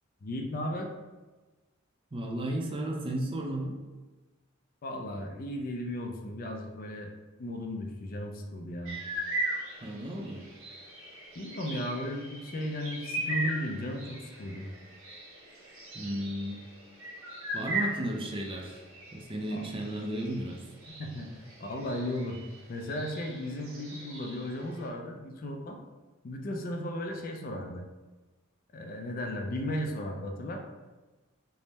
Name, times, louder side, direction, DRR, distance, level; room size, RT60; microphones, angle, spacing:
voice 1, 0.2-0.9 4.8-7.1 7.4-9.0 11.4-14.7 19.5-19.6 20.9-22.4 22.7-25.8 26.2-27.8 28.7-30.6, left 1 dB, 45° left, 3 dB, 0.4 m, -35 dB
voice 2, 2.1-3.8 9.8-10.4 15.9-16.6 17.5-18.8 19.1-20.6, right 1 dB, 25° right, 1 dB, 0.4 m, -34 dB
sound 1, 8.8-24.9, right 1 dB, 85° right, 0.8 m, -39 dB
3.5 x 2.0 x 4.1 m, 1.2 s
head